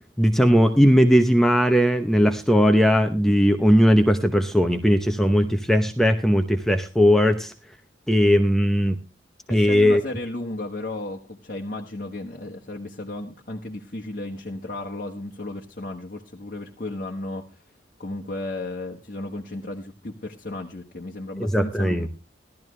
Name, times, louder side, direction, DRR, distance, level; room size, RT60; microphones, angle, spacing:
voice 1, 0.2-7.5 8.1-9.0 9.5-10.0 21.4-22.1, equal, ahead, 6 dB, 0.8 m, -18 dB
voice 2, 9.5-17.6 18.0-22.1, left 2 dB, 50° left, 0 dB, 1.3 m, -34 dB
17.0 x 12.5 x 3.3 m, 0.30 s
head